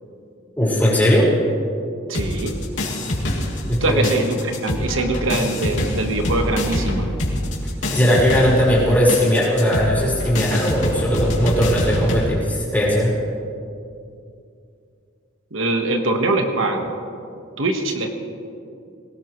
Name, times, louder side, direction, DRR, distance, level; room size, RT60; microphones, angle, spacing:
voice 1, 0.6-1.3 3.7-4.0 7.9-13.1, equal, 10° left, -7 dB, 4.6 m, -18 dB
sound 1, 2.1-3.8 4.0-12.3, left 1 dB, 70° left, 2.8 m, -25 dB
voice 2, 2.1-2.5 3.8-7.1 15.5-16.9 17.6-18.1, right 2 dB, 85° right, 4 dB, 1.4 m, -22 dB
21.5 x 18.5 x 3.2 m, 2.5 s
head